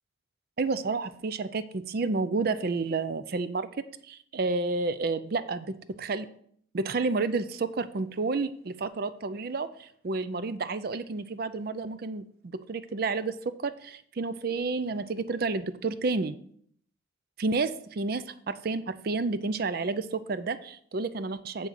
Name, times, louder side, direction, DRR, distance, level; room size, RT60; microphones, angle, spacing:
voice 1, 0.6-3.7 4.1-6.3 6.7-16.4 17.4-21.7, right 3 dB, 50° right, 13 dB, 0.5 m, -30 dB
7.0 x 5.3 x 6.4 m, 0.64 s
head